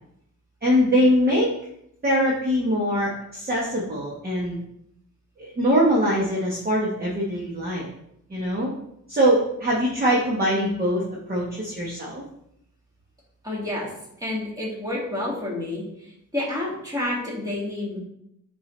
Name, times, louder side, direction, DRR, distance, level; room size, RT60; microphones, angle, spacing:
voice 1, 0.6-1.5 2.0-4.6 5.4-7.9 8.3-8.7 9.1-11.0 11.3-12.2, equal, 30° right, -5 dB, 1.3 m, -22 dB
voice 2, 13.4-13.9 14.2-15.8 16.3-18.0, left 1 dB, 10° right, -5 dB, 2.4 m, -29 dB
8.3 x 4.6 x 3.3 m, 0.76 s
wide cardioid pair, 145°, 31 cm